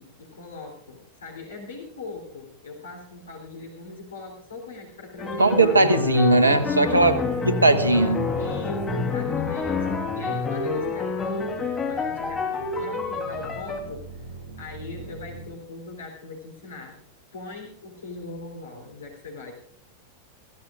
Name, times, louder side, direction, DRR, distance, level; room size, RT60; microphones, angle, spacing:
voice 1, 0.0-5.8 6.9-7.7 8.4-12.5 12.8-17.0 17.3-19.5, left 3 dB, 70° left, 0 dB, 3.4 m, -40 dB
sound 1, 5.2-13.8, left 4 dB, 15° left, 3.2 m, -28 dB
voice 2, 5.4-7.1 7.4-8.3, right 2 dB, 80° right, 11 dB, 1.2 m, -18 dB
sound 2, 10.6-15.5, right 3 dB, 35° right, 5.7 m, -45 dB
22.5 x 15.5 x 2.5 m, 0.68 s
figure-of-eight pair, 90°, 0 cm